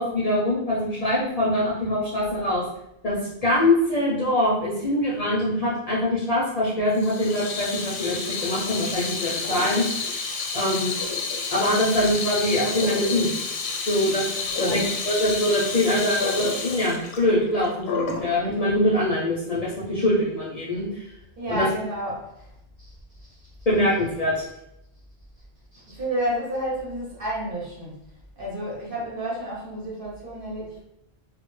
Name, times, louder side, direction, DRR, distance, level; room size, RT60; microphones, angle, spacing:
voice 1, 0.0-2.7 3.0-10.3 10.5-11.0 11.5-13.3 13.9-14.8 15.1-21.1 21.5-21.7 23.7-24.5, left 1 dB, 50° left, -6 dB, 0.5 m, -23 dB
Water tap faucet / Sink (filling or washing), 6.9-18.3, left 4 dB, 85° left, 0.8 m, -30 dB
voice 2, 14.5-14.8 21.4-22.5 22.8-23.3 25.7-28.0 28.4-30.8, right 1 dB, 60° right, -7 dB, 1.0 m, -31 dB
2.1 x 2.1 x 3.0 m, 0.81 s
omnidirectional pair, 1.0 m